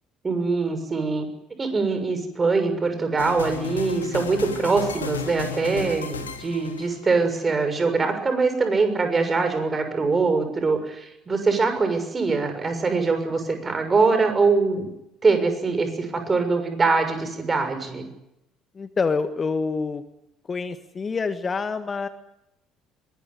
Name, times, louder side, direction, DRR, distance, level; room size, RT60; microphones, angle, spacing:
voice 1, 0.2-1.3 1.6-14.9 15.2-18.0, right 4 dB, 25° right, 8 dB, 6.5 m, -23 dB
sound 1, 3.2-7.4, left 6 dB, 80° left, 1.7 m, -34 dB
voice 2, 18.7-20.0 20.5-22.1, left 4 dB, 30° left, 10 dB, 1.6 m, -27 dB
23.0 x 20.5 x 9.7 m, 0.85 s
figure-of-eight pair, 55°, 0 cm